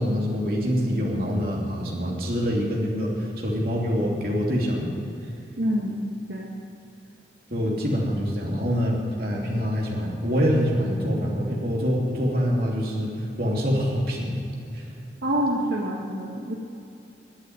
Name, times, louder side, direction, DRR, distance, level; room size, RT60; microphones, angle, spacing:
voice 1, 0.0-4.9 7.5-14.4 14.7-14.8, equal, 55° right, -3 dB, 2.9 m, -25 dB
voice 2, 5.6-6.0 6.3-6.5 15.2-16.5, equal, 80° right, -3 dB, 1.6 m, -26 dB
11.5 x 8.8 x 9.6 m, 2.7 s
head